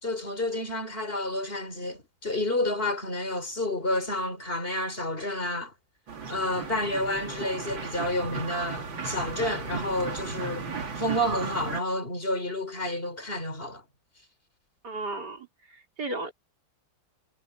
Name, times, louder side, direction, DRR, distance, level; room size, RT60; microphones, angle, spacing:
voice 1, 0.0-5.7 6.3-13.8, left 1 dB, 30° left, 4.4 m, -30 dB
sound 1, 6.1-11.8, right 4 dB, 75° right, 3.3 m, -35 dB
voice 2, 14.8-16.3, right 2 dB, 55° right, 4.6 m, -35 dB
omnidirectional pair, 2.1 m